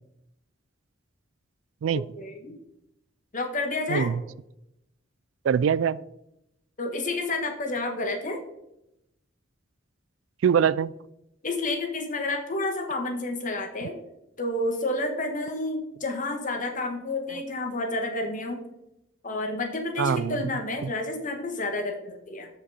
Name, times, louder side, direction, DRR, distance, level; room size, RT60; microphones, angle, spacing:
voice 1, 1.9-2.5 3.3-4.1 6.8-8.4 11.4-13.9 14.4-18.6 19.2-22.5, left 2 dB, 40° left, 4 dB, 1.5 m, -30 dB
voice 2, 3.9-4.2 5.4-6.0 10.4-10.9 17.3-17.4 20.0-20.4 20.8-20.9, right 7 dB, 75° right, 20 dB, 0.3 m, -23 dB
13.0 x 5.4 x 4.2 m, 0.85 s
head